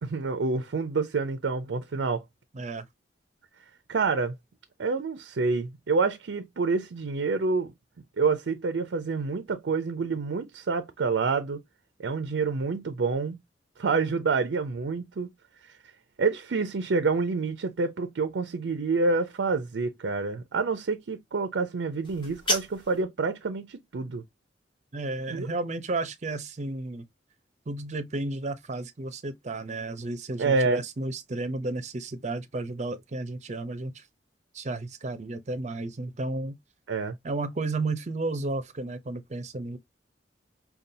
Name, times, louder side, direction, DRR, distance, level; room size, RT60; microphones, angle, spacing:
voice 1, 0.0-2.2 3.9-4.3 4.8-7.7 8.2-11.6 12.0-13.4 13.8-15.3 16.2-24.2 25.3-25.5 30.4-30.8 36.9-37.2, right 4 dB, 90° right, 0.5 m, -27 dB
voice 2, 2.5-2.9 24.9-27.1 27.7-34.0 34.5-36.6 37.2-39.8, right 2 dB, 40° right, 0.6 m, -32 dB
sound 1, 22.0-23.0, left 1 dB, 25° left, 1.4 m, -31 dB
5.3 x 2.3 x 2.7 m
head